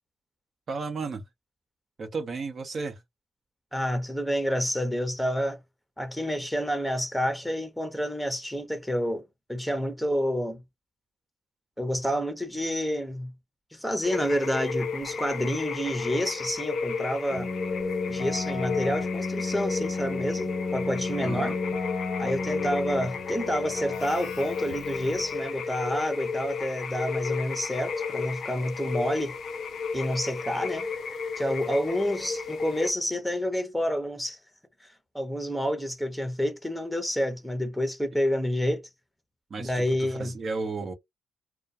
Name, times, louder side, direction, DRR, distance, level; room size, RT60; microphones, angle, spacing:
voice 1, 0.7-1.2 2.0-3.0 21.2-21.5 39.5-40.9, right 4 dB, 50° right, 0.6 m, -33 dB
voice 2, 3.7-5.6 6.0-9.2 9.5-10.6 11.8-13.3 13.7-17.5 18.1-21.6 22.2-29.3 29.9-30.9 31.4-34.4 35.1-38.8 39.6-40.3, equal, ahead, 0.7 m, -29 dB
sound 1, 14.0-32.9, left 5 dB, 60° left, 0.5 m, -33 dB
Keyboard (musical), 17.3-25.4, left 3 dB, 90° left, 0.8 m, -33 dB
2.3 x 2.2 x 2.6 m
cardioid pair, 75°, 0 cm